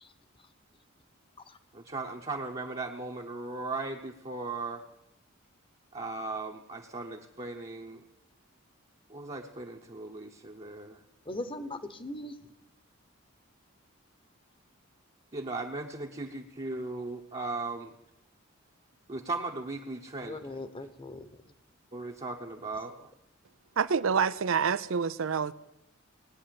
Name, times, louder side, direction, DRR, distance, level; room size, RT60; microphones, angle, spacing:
voice 1, 1.7-4.8 5.9-8.0 9.1-11.0 15.3-17.9 19.1-20.6 21.9-23.1, right 3 dB, 30° right, 1.0 m, -37 dB
voice 2, 11.3-12.3 20.2-21.3, left 1 dB, 25° left, 1.0 m, -39 dB
voice 3, 23.8-25.5, right 6 dB, 80° right, 0.5 m, -27 dB
18.0 x 9.5 x 7.7 m
head